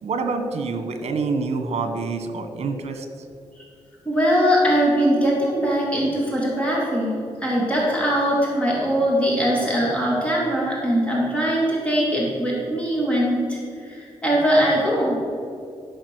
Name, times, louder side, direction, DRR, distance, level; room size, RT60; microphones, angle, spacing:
voice 1, 0.0-3.1, right 4 dB, 75° right, 7 dB, 1.2 m, -26 dB
voice 2, 4.0-7.1 7.4-15.2, equal, 10° left, -5 dB, 2.9 m, -21 dB
14.0 x 5.1 x 6.3 m, 2.4 s
wide cardioid pair, 145°, 11 cm